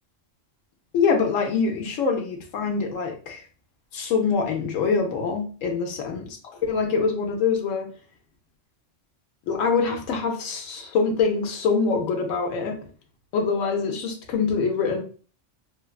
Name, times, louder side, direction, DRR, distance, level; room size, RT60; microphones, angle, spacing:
voice 1, 0.9-3.4 3.9-6.4 6.6-7.9 9.5-12.8 13.3-15.0, left 5 dB, 80° left, 3 dB, 1.0 m, -24 dB
3.1 x 2.3 x 2.3 m, 0.39 s
omnidirectional pair, 1.3 m